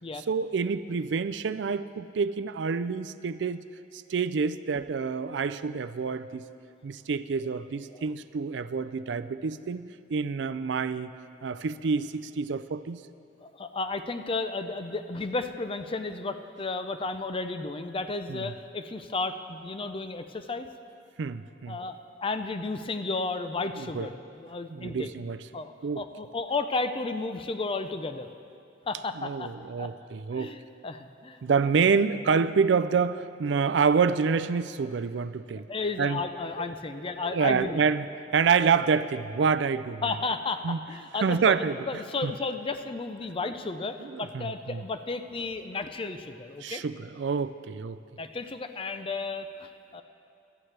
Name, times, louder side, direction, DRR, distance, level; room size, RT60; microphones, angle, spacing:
voice 1, 0.3-3.6 3.9-6.4 6.8-11.1 11.4-13.0 18.3-18.5 21.2-21.8 23.7-24.1 24.7-25.4 25.8-26.0 29.2-30.6 31.4-35.7 36.0-36.2 36.6-36.7 37.3-38.1 38.3-40.0 40.6-40.8 41.2-42.3 44.0-44.8 46.6-48.0, right 5 dB, 65° right, 13 dB, 0.4 m, -27 dB
voice 2, 13.4-20.7 21.7-25.1 25.5-28.3 28.9-29.5 29.8-29.9 30.3-30.6 30.8-31.7 35.7-37.8 40.0-41.5 41.9-46.8 48.2-50.0, left 3 dB, 30° left, 9 dB, 0.5 m, -33 dB
18.0 x 13.0 x 3.3 m, 2.6 s
head